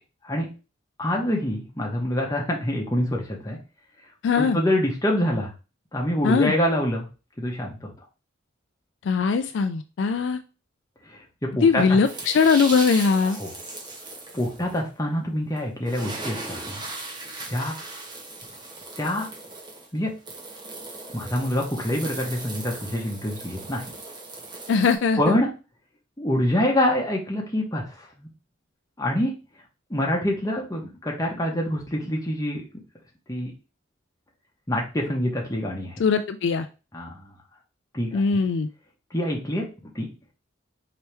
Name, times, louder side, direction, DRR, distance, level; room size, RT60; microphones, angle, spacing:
voice 1, 1.0-3.6 4.3-5.5 5.9-7.1 7.4-7.9 11.1-12.0 13.4-13.5 14.3-16.8 17.5-17.7 19.0-19.3 19.9-20.1 21.1-23.8 25.2-25.5 26.2-28.3 29.0-29.3 29.9-32.6 33.3-33.5 34.7-36.0 36.9-37.3 37.9-38.2 39.1-39.7 39.9-40.1, left 1 dB, 20° left, -1 dB, 1.0 m, -26 dB
voice 2, 4.2-4.6 6.2-6.5 9.0-10.4 11.6-13.4 24.7-25.4 36.0-36.7 38.1-38.7, left 5 dB, 65° left, 10 dB, 0.3 m, -21 dB
sound 1, 12.0-14.8 15.6-15.7 15.8-25.0, right 2 dB, 25° right, 0.9 m, -38 dB
4.4 x 2.9 x 3.3 m, 0.32 s
head